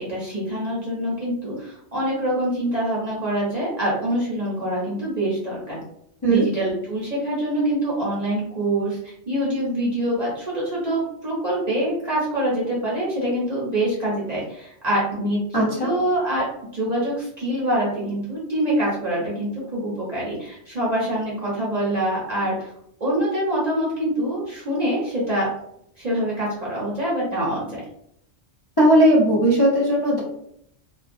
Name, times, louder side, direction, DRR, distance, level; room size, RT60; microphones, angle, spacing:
voice 1, 0.0-5.8 6.3-15.4 15.8-16.4 16.7-22.7 23.0-25.5 26.0-27.8, right 1 dB, 40° right, -6 dB, 0.7 m, -25 dB
voice 2, 15.5-15.9 28.8-30.2, right 1 dB, 30° left, -7 dB, 0.5 m, -17 dB
2.3 x 2.2 x 2.5 m, 0.73 s
omnidirectional pair, 1.2 m